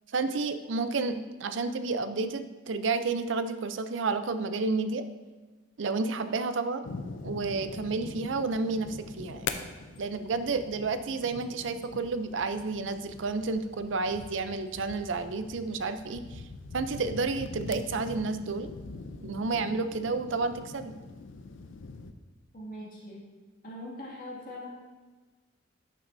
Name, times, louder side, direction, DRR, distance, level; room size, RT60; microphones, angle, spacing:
voice 1, 0.1-5.0 5.8-6.8 7.2-9.5 10.0-16.4 16.7-18.7 19.2-20.9, right 4 dB, 70° right, 10 dB, 0.5 m, -31 dB
sound 1, 6.8-22.1, left 4 dB, 70° left, 0.5 m, -43 dB
voice 2, 22.5-23.3 23.6-24.7, left 1 dB, 45° left, -5 dB, 2.1 m, -41 dB
11.5 x 6.3 x 2.6 m, 1.3 s
head